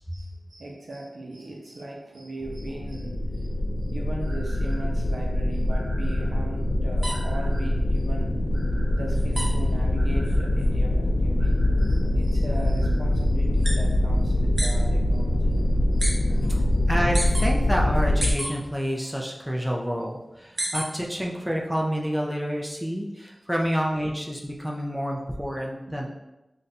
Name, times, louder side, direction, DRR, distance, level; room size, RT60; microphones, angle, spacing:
voice 1, 0.0-3.5 3.8-16.9 20.6-20.7 21.2-21.4 25.5-25.6 25.9-26.1, right 2 dB, 75° right, -1 dB, 0.6 m, -39 dB
sound 1, 2.4-18.3, left 1 dB, 75° left, 0.3 m, -23 dB
sound 2, 7.0-14.8 15.1-16.1 16.4-17.5 17.9-19.1 19.4-21.1 21.5-22.7, right 1 dB, 35° right, 0.7 m, -34 dB
voice 2, 16.9-26.1, equal, 5° right, -2 dB, 0.4 m, -28 dB
2.6 x 2.2 x 4.0 m, 0.97 s
wide cardioid pair, 85°, 0 cm